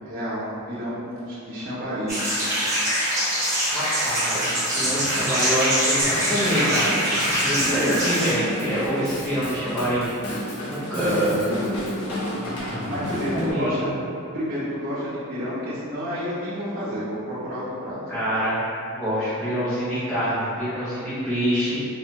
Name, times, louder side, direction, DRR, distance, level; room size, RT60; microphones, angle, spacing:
voice 1, 0.0-2.3 4.7-5.0 11.0-11.6 12.9-13.9 14.3-18.0, equal, 40° right, -11 dB, 1.0 m, -30 dB
sound 1, 2.1-8.3, equal, 15° right, 1.0 m, -24 dB
voice 2, 3.7-7.0 7.4-10.1 10.6-11.3 13.3-13.9 18.1-18.6 18.9-21.8, equal, ahead, -15 dB, 0.7 m, -25 dB
Drum kit / Drum, 6.0-13.5, left 1 dB, 70° left, 0.9 m, -32 dB
4.2 x 2.3 x 2.9 m, 2.7 s
head